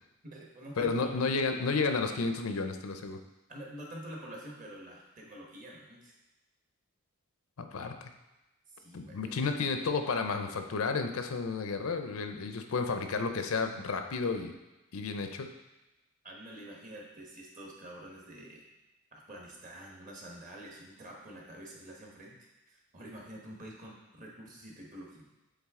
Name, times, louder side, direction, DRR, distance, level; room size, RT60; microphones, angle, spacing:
voice 1, 0.2-1.1 3.5-6.2 8.7-9.6 16.2-18.7 19.1-25.3, right 1 dB, 35° right, -2 dB, 1.2 m, -47 dB
voice 2, 0.8-3.2 7.7-8.1 8.9-14.5 14.9-15.5, left 4 dB, 75° left, 7 dB, 0.5 m, -32 dB
7.3 x 3.5 x 3.6 m, 1.0 s
head